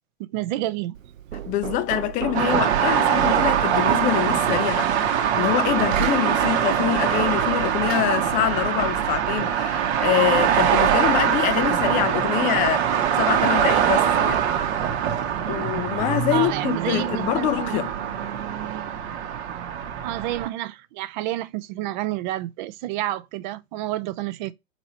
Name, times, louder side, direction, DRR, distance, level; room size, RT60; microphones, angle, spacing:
voice 1, 0.3-1.0 16.3-17.8 20.0-24.5, right 15 dB, 40° right, 0.5 m, -29 dB
Knock, 0.9-8.8, right 10 dB, 85° right, 0.6 m, -36 dB
voice 2, 1.5-14.4 15.5-17.9, left 13 dB, 20° left, 0.4 m, -25 dB
sound 1, 2.3-20.5, right 9 dB, 55° right, 1.0 m, -23 dB
3.9 x 2.9 x 4.3 m
hypercardioid pair, 115°, 38 cm